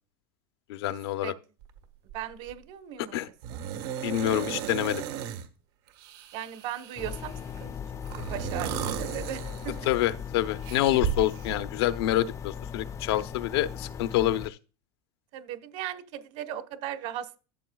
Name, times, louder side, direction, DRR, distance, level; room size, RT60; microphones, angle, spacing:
voice 1, 0.7-1.3 3.1-3.3 4.0-5.0 9.9-14.6, left 13 dB, 85° left, 0.8 m, -27 dB
sound 1, 1.6-1.8 2.1-2.5 3.4-5.5 6.0-7.4 8.0-10.1 10.6-11.6, right 9 dB, 85° right, 1.5 m, -35 dB
voice 2, 2.1-3.2 3.5-3.6 6.3-7.3 7.6-9.9 15.3-17.4, right 11 dB, 55° right, 1.3 m, -38 dB
sound 2, 7.0-14.5, left 7 dB, 25° left, 0.4 m, -38 dB
13.5 x 7.5 x 2.4 m
supercardioid pair, 135°, 13 cm